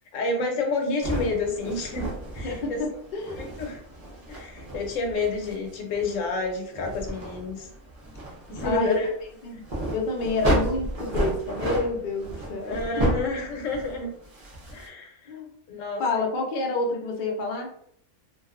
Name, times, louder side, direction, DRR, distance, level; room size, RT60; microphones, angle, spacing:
voice 1, 0.1-2.8 3.4-3.8 4.3-7.7 8.5-9.1 12.6-14.1 14.7-15.3 15.7-16.2, left 3 dB, 75° left, 2 dB, 1.0 m, -29 dB
sound 1, 1.0-14.9, right 1 dB, 40° right, 0.6 m, -32 dB
voice 2, 2.4-3.4 8.6-9.0 9.4-9.7 9.9-12.8 15.3-15.5 16.0-17.7, left 3 dB, 60° left, 1 dB, 0.5 m, -28 dB
2.4 x 2.3 x 2.3 m, 0.66 s
omnidirectional pair, 1.4 m